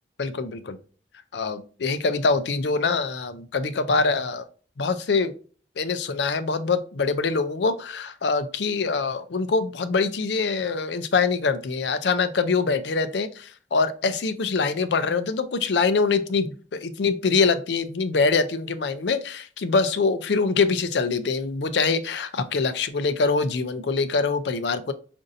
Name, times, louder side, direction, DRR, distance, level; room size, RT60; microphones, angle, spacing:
voice 1, 0.2-0.8 1.3-4.4 4.8-5.4 5.8-24.9, left 4 dB, 80° left, 11 dB, 0.5 m, -24 dB
5.1 x 2.6 x 2.5 m, 0.40 s
head